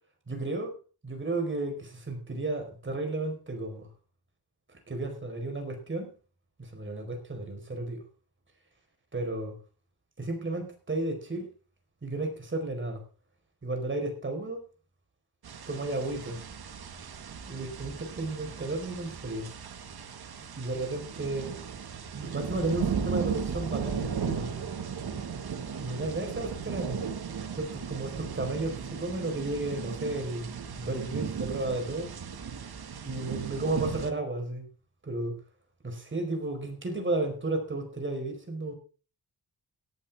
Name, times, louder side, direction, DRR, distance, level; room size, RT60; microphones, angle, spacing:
voice 1, 0.3-0.7 1.0-3.9 4.7-6.1 6.6-8.0 9.1-9.6 10.2-11.5 12.0-13.0 13.6-14.6 15.7-16.4 17.4-19.5 20.6-21.5 22.1-24.5 25.8-27.0 27.5-30.5 30.8-32.1 33.0-34.7 35.0-35.4 35.8-38.7, right 2 dB, 30° right, 4 dB, 4.7 m, -33 dB
sound 1, 15.4-34.1, right 7 dB, 75° right, 1.9 m, -36 dB
17.5 x 12.0 x 3.6 m, 0.36 s
wide cardioid pair, 145°, 38 cm